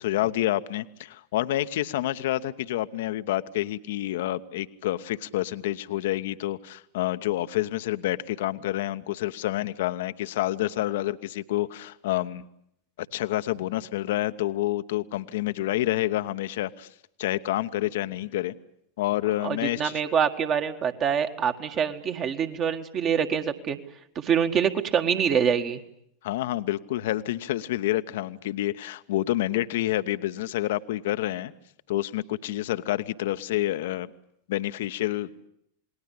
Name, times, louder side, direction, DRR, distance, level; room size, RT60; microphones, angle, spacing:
voice 1, 0.0-12.5 13.0-16.9 17.2-18.5 19.0-20.0 26.2-31.5 31.9-34.1 34.5-35.5, left 15 dB, 55° left, 12 dB, 0.9 m, -28 dB
voice 2, 19.4-23.8 24.1-25.8, right 7 dB, 30° right, 7 dB, 1.7 m, -25 dB
28.5 x 20.0 x 8.5 m, 0.74 s
figure-of-eight pair, 90°, 0 cm